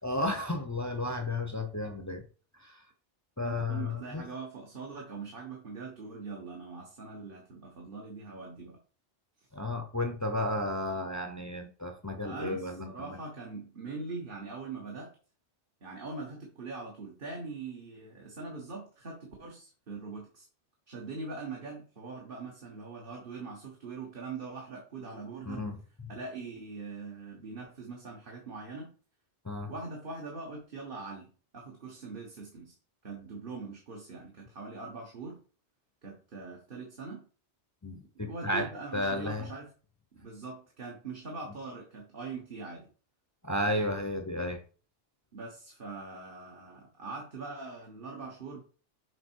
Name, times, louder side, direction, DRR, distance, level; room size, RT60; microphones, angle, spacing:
voice 1, 0.0-2.2 2.6-2.8 3.4-4.2 9.5-13.2 25.5-25.8 29.4-29.7 37.8-39.5 43.4-44.6, left 1 dB, 20° left, 5 dB, 0.7 m, -33 dB
voice 2, 3.4-8.8 9.4-9.5 12.2-15.1 15.8-20.5 20.9-25.6 26.1-28.9 29.7-32.7 33.0-35.4 36.0-37.2 38.2-39.7 40.1-42.9 45.3-48.6, right 4 dB, 50° right, -1 dB, 1.5 m, -42 dB
6.8 x 4.2 x 4.6 m, 0.38 s
omnidirectional pair, 1.2 m